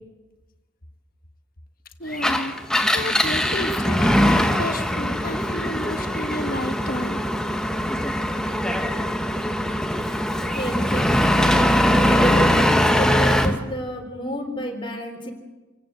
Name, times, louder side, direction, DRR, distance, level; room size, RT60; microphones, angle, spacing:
voice 1, 2.0-7.2 14.1-14.2, left 1 dB, 40° left, 7 dB, 1.6 m, -32 dB
Engine, 2.1-13.6, equal, 5° left, 1.2 m, -21 dB
voice 2, 10.5-11.6 12.0-15.3, left 1 dB, 25° left, 2 dB, 3.6 m, -31 dB
27.5 x 16.5 x 8.2 m, 1.2 s
head